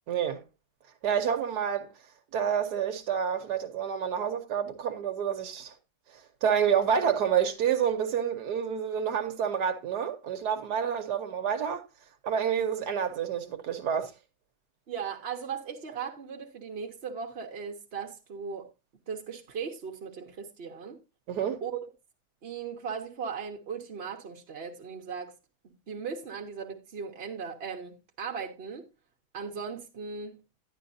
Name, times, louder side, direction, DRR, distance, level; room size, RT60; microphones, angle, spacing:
voice 1, 0.1-0.4 1.0-1.9 2.3-5.7 6.1-11.8 12.2-14.1 21.3-21.6, right 8 dB, 85° right, 1.5 m, -28 dB
voice 2, 14.9-18.7 19.1-21.0 21.6-21.8 22.4-25.3 25.9-28.9 29.3-30.4, right 6 dB, 45° right, 1.2 m, -37 dB
10.5 x 10.5 x 2.6 m
omnidirectional pair, 1.7 m